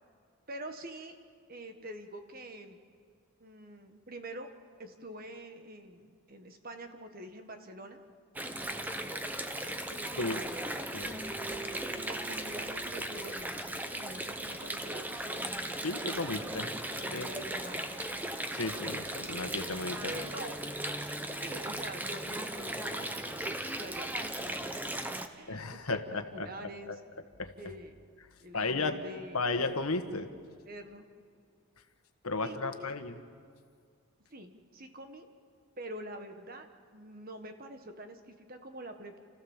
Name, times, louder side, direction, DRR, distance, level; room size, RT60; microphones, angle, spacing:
voice 1, 0.5-1.1 1.5-2.8 3.4-4.5 4.8-8.0 9.9-10.7 11.4-11.6 11.9-15.5 16.1-16.3 16.9-17.9 20.0-20.6 21.4-24.6 25.3-25.8 26.1-26.9 27.6-28.1 28.4-29.7 30.7-31.1 32.4-32.9 34.3-35.3 35.8-39.2, right 1 dB, 40° right, 6 dB, 1.5 m, -46 dB
Water, 8.3-25.3, right 1 dB, 10° right, 0.8 m, -37 dB
voice 2, 15.8-16.7 17.1-17.3 18.5-20.1 25.5-27.0 27.4-27.7 28.5-29.0 29.3-30.3 32.2-33.1, left 3 dB, 80° left, 8 dB, 1.4 m, -34 dB
29.5 x 14.5 x 7.3 m, 2.1 s
head